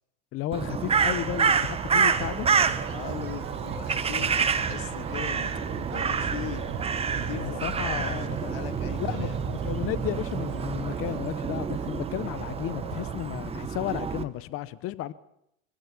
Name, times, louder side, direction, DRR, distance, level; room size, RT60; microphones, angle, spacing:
voice 1, 0.3-2.5 7.4-8.4 9.0-15.1, left 13 dB, 45° left, 1.0 m, -33 dB
Crow, 0.5-14.2, right 6 dB, 20° right, 1.3 m, -28 dB
sound 1, 0.5-13.2, right 8 dB, 80° right, 3.9 m, -41 dB
sound 2, 2.1-11.2, right 5 dB, 40° right, 2.8 m, -41 dB
voice 2, 2.9-6.7 7.1-7.6 7.9-9.4, left 10 dB, 80° left, 2.1 m, -40 dB
23.0 x 16.0 x 7.4 m
supercardioid pair, 120°, 30 cm